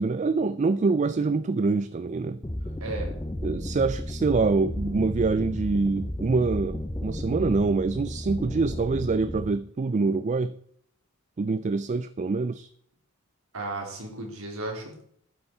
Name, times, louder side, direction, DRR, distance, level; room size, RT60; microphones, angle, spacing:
voice 1, 0.0-2.4 3.4-10.5 11.4-12.7, right 3 dB, 35° right, 14 dB, 0.4 m, -25 dB
sound 1, 2.4-9.5, left 1 dB, 15° left, 0.7 m, -33 dB
voice 2, 2.8-3.1 13.5-15.0, right 2 dB, 85° right, 1 dB, 3.4 m, -34 dB
12.0 x 9.0 x 4.5 m, 0.65 s
head